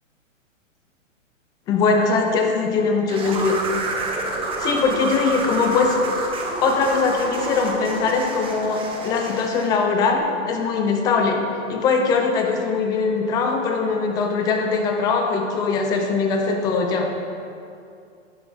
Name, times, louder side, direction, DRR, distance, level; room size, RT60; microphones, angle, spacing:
voice 1, 1.7-3.6 4.6-6.0 6.6-11.4 11.7-17.1, left 4 dB, 10° left, 3 dB, 0.4 m, -21 dB
sound 1, 3.1-9.8, right 2 dB, 15° right, 1.0 m, -28 dB
11.0 x 10.0 x 3.5 m, 2.5 s
hypercardioid pair, 125°, 40 cm